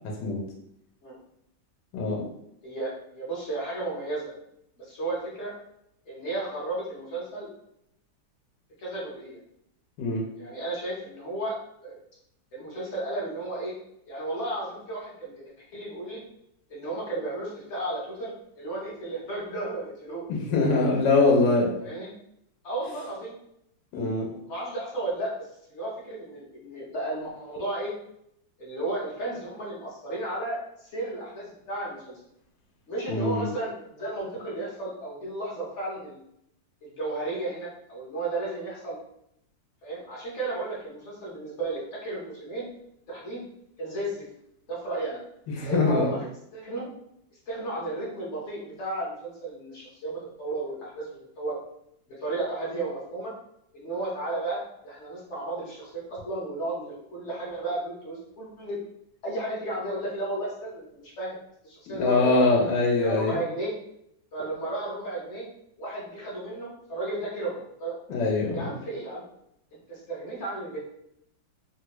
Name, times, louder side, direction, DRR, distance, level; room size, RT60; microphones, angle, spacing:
voice 1, 2.6-4.3 4.8-5.5 6.0-7.5 8.8-9.4 10.4-11.6 11.8-12.0 12.5-13.7 14.1-15.4 15.7-16.2 16.7-20.2 21.8-22.1 22.6-23.3 24.5-27.9 28.6-32.2 32.9-36.2 36.8-39.0 39.8-42.7 43.1-43.4 43.8-44.2 44.7-45.2 45.6-46.2 46.5-46.9 47.5-51.1 51.4-51.6 52.1-53.3 53.7-58.8 59.2-61.4 61.6-62.5 63.0-63.7 64.3-65.5 65.8-68.0 68.5-69.2 69.7-70.8, right 2 dB, 45° left, -5 dB, 1.2 m, -33 dB
voice 2, 20.3-21.7 23.9-24.3 33.1-33.4 45.5-46.1 61.9-63.4 68.1-68.7, left 3 dB, 75° left, -2 dB, 1.4 m, -23 dB
3.5 x 2.3 x 3.0 m, 0.75 s
omnidirectional pair, 2.1 m